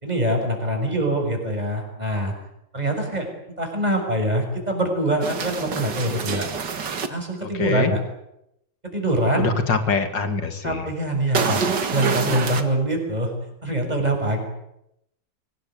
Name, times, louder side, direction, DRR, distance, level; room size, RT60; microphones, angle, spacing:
voice 1, 0.0-2.3 2.7-3.3 3.6-6.5 7.1-8.0 8.8-9.5 10.6-11.6 11.9-13.3 13.6-14.4, right 1 dB, 20° right, 3 dB, 6.7 m, -24 dB
sound 1, 5.2-7.1 11.3-12.6, right 5 dB, 65° right, 2.4 m, -26 dB
voice 2, 7.4-7.9 9.4-10.8, left 5 dB, 70° left, 8 dB, 3.0 m, -24 dB
24.0 x 19.5 x 9.3 m, 0.81 s
omnidirectional pair, 2.0 m